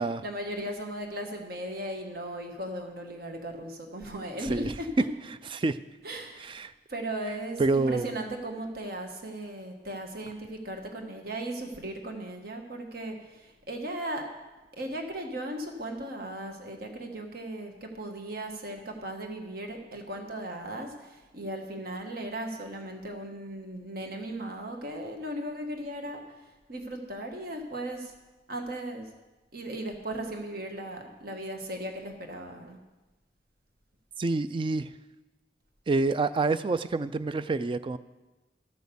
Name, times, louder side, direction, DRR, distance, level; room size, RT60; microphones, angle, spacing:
voice 1, 0.2-4.9 6.0-6.5 6.9-14.3 14.7-26.2 26.7-28.1 28.5-29.1 29.5-32.8, right 1 dB, 60° right, 3 dB, 1.4 m, -37 dB
voice 2, 4.4-4.7 5.5-5.8 6.4-6.7 7.6-8.1 34.2-34.9 35.9-38.0, right 3 dB, 30° right, 14 dB, 0.4 m, -27 dB
13.5 x 6.3 x 6.9 m, 1.1 s
head